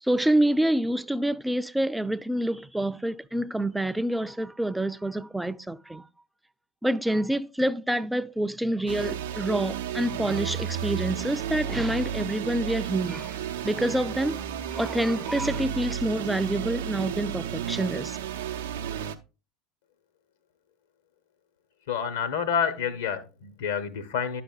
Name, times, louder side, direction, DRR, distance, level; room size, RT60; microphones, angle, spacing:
voice 1, 0.0-6.0 6.8-13.4 13.6-18.2, right 1 dB, 5° right, 0.4 m, -27 dB
sound 1, 8.9-19.2, right 9 dB, 70° right, 0.5 m, -32 dB
voice 2, 21.9-24.4, left 7 dB, 65° left, 0.8 m, -28 dB
10.5 x 5.9 x 2.3 m
figure-of-eight pair, 75°, 0 cm